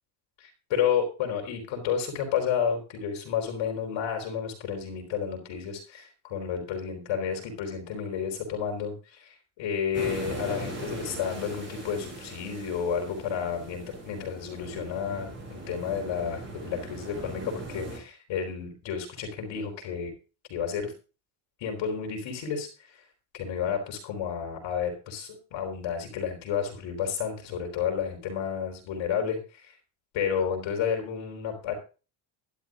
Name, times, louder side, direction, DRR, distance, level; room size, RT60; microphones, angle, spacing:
voice 1, 0.4-8.9 9.2-20.1 20.5-20.9 21.6-22.7 23.3-29.7 30.1-31.7, left 7 dB, 70° left, 3 dB, 4.4 m, -31 dB
sound 1, 9.9-18.0, right 2 dB, 25° right, 7.5 m, -40 dB
12.0 x 12.0 x 3.8 m, 0.33 s
cardioid pair, 130°, 47 cm